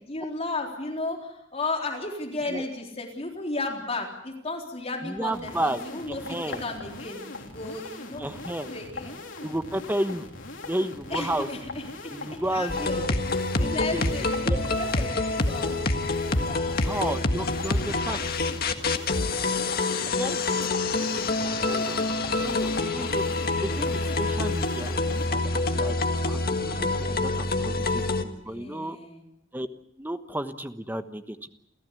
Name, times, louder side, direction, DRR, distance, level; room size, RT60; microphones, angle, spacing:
voice 1, 0.1-9.2 11.1-13.1 13.6-15.8 16.2-16.9 17.4-17.7 27.2-27.9 28.5-29.2, left 2 dB, 35° left, 1 dB, 3.8 m, -35 dB
voice 2, 5.0-5.8 6.1-6.6 8.2-8.7 9.4-10.3 10.7-11.5 12.1-13.0 13.6-14.6 16.8-18.2 20.1-20.4 21.0-23.2 23.6-26.0 26.3-29.0 29.5-29.7 30.0-31.5, right 1 dB, 10° right, 9 dB, 1.2 m, -33 dB
sound 1, 5.3-25.3, left 2 dB, 85° left, 3.7 m, -40 dB
sound 2, 12.7-28.2, left 2 dB, 55° left, 1.6 m, -26 dB
29.0 x 14.5 x 8.4 m, 0.82 s
head